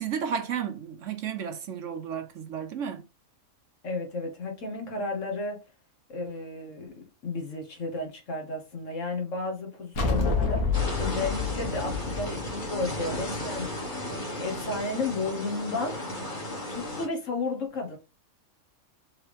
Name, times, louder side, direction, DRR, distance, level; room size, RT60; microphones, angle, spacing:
voice 1, 0.0-3.0, right 7 dB, 65° right, 1.0 m, -33 dB
voice 2, 3.8-5.6 6.1-13.7 14.0-16.0 16.7-18.0, left 3 dB, 60° left, 1.7 m, -33 dB
sound 1, 10.0-13.4, left 4 dB, 90° left, 1.5 m, -28 dB
sound 2, 10.7-17.1, left 1 dB, 35° left, 1.9 m, -34 dB
4.6 x 3.2 x 3.4 m
omnidirectional pair, 1.5 m